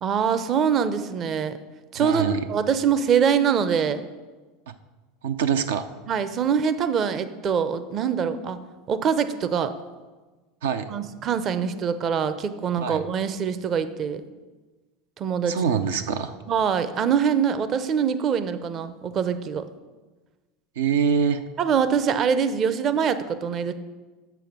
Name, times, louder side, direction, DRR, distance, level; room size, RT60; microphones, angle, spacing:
voice 1, 0.0-1.6 1.9-4.0 6.1-8.6 8.9-9.7 10.9-14.2 15.2-15.5 16.5-19.6 21.6-23.7, right 7 dB, 40° right, 12 dB, 0.6 m, -24 dB
voice 2, 1.9-2.5 4.7-4.8 5.2-5.9 10.6-10.9 12.8-13.0 15.5-16.4 20.8-21.4, right 7 dB, 85° right, 8 dB, 0.5 m, -24 dB
7.0 x 6.8 x 6.0 m, 1.3 s
hypercardioid pair, 105°, 0 cm